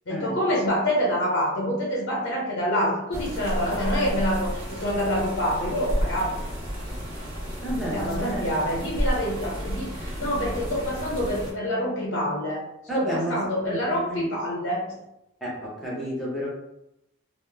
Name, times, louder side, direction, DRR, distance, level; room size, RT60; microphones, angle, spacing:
voice 1, 0.1-6.5 7.9-12.6 12.9-15.0, equal, 70° left, -4 dB, 0.7 m, -26 dB
sound 1, 3.1-11.5, equal, 80° right, 0.8 m, -31 dB
voice 2, 7.6-8.4 12.9-14.3 15.4-16.5, equal, ahead, -6 dB, 0.6 m, -31 dB
2.1 x 2.0 x 3.1 m, 0.86 s
head